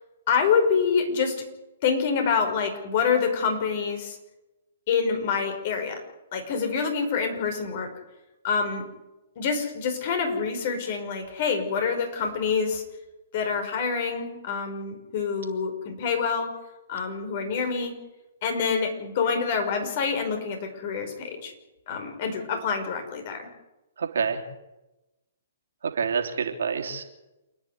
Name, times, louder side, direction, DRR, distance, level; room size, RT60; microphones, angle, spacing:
voice 1, 0.3-1.3 1.8-4.2 4.9-6.0 6.3-7.9 8.4-8.8 9.4-12.8 13.3-16.5 16.9-17.9 18.4-21.5 21.9-23.5, left 5 dB, 50° left, 5 dB, 5.6 m, -26 dB
voice 2, 24.0-24.4 25.9-27.0, right 6 dB, 75° right, 3 dB, 3.4 m, -27 dB
28.5 x 10.5 x 9.7 m, 1.0 s
hypercardioid pair, 135°, 0 cm